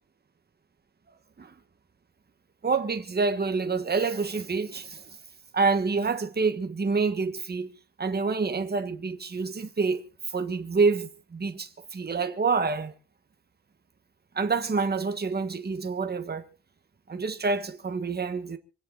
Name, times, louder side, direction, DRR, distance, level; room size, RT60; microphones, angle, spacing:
voice 1, 2.6-5.0 5.5-7.7 8.0-12.9 14.3-16.4 17.1-18.6, right 4 dB, 25° right, 1.4 m, -27 dB
27.0 x 9.8 x 3.9 m
wide cardioid pair, 180°, 40 cm